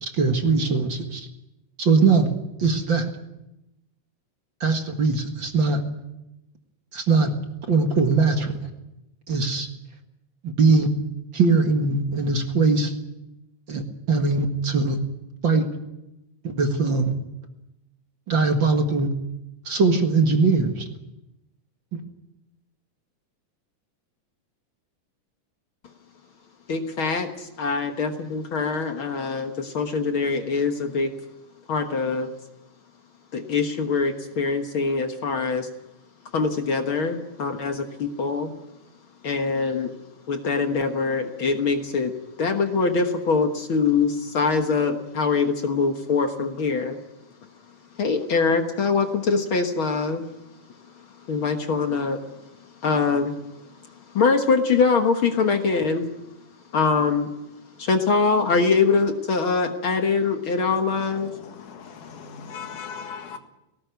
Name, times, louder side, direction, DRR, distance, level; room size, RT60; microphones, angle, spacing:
voice 1, 0.0-1.3 1.8-2.3 2.6-3.1 4.6-5.8 6.9-7.3 7.7-8.6 9.3-9.7 10.4-10.9 11.3-12.9 13.7-15.0 15.4-15.7 16.4-17.1 18.3-19.1 19.7-20.8, right 4 dB, 45° right, 5 dB, 2.1 m, -21 dB
voice 2, 26.7-31.1 31.7-32.3 33.3-35.7 36.3-38.5 39.2-39.9 40.3-42.1 42.4-47.0 48.0-50.2 51.3-52.2 52.8-53.4 54.1-56.1 56.7-57.3 57.8-61.3, left 4 dB, 50° left, 6 dB, 1.8 m, -23 dB
voice 3, 61.3-63.4, left 6 dB, 75° left, 7 dB, 3.2 m, -38 dB
18.5 x 18.0 x 9.4 m, 0.91 s
omnidirectional pair, 3.6 m